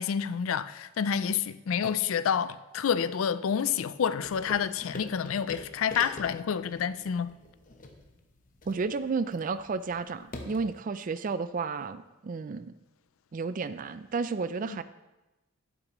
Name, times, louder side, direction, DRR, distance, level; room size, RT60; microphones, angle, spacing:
voice 1, 0.0-7.3 14.7-14.8, left 7 dB, 70° left, 0.4 m, -29 dB
sound 1, 4.2-10.8, left 2 dB, 40° left, 0.9 m, -45 dB
voice 2, 8.7-12.7 13.3-14.8, right 4 dB, 40° right, 0.3 m, -32 dB
11.5 x 8.8 x 3.0 m
head